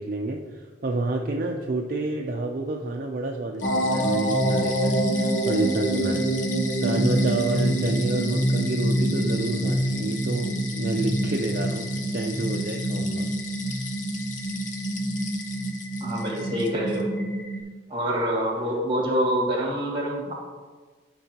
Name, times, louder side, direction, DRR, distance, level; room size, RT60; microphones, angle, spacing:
voice 1, 0.0-6.2 6.8-13.3, right 2 dB, 50° right, 1 dB, 0.5 m, -29 dB
sound 1, 3.6-17.6, right 1 dB, 65° left, 1.3 m, -26 dB
sound 2, 3.6-17.0, left 4 dB, 45° left, 0.8 m, -39 dB
voice 2, 16.0-17.1 17.9-20.3, equal, 25° right, -1 dB, 1.7 m, -26 dB
11.5 x 5.4 x 2.9 m, 1.4 s
head